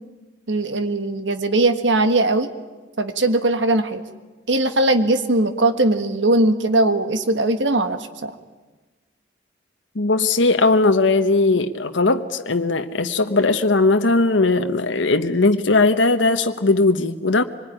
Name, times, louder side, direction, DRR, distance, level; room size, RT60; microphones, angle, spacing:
voice 1, 0.5-2.5 3.0-4.0 4.5-8.3, right 2 dB, 80° right, 9 dB, 1.6 m, -19 dB
voice 2, 9.9-17.4, left 3 dB, 85° left, 7 dB, 1.1 m, -18 dB
25.0 x 20.5 x 10.0 m, 1.3 s
head